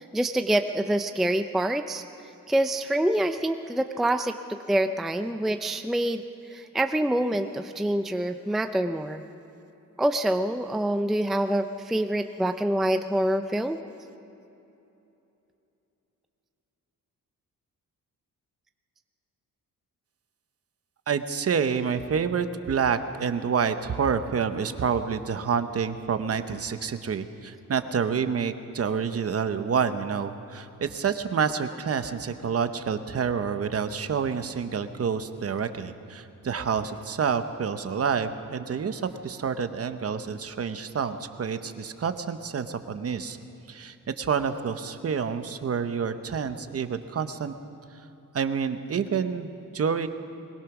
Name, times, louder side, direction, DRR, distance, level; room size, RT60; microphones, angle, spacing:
voice 1, 0.0-2.0 2.5-6.2 6.5-9.2 10.0-13.8, right 1 dB, ahead, 7 dB, 0.4 m, -26 dB
voice 2, 21.1-43.4 43.7-47.5 48.3-50.1, right 6 dB, 45° right, 9 dB, 0.9 m, -28 dB
21.5 x 20.0 x 6.0 m, 2.9 s
wide cardioid pair, 160°, 34 cm